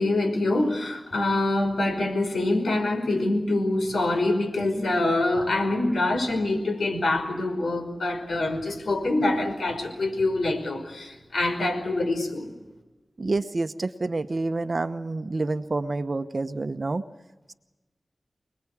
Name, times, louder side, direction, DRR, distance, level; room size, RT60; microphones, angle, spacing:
voice 1, 0.0-12.5, left 2 dB, 80° left, 5 dB, 5.3 m, -25 dB
voice 2, 13.2-17.0, right 3 dB, 45° right, 9 dB, 0.9 m, -28 dB
27.5 x 20.0 x 8.4 m, 1.2 s
wide cardioid pair, 80°, 0 cm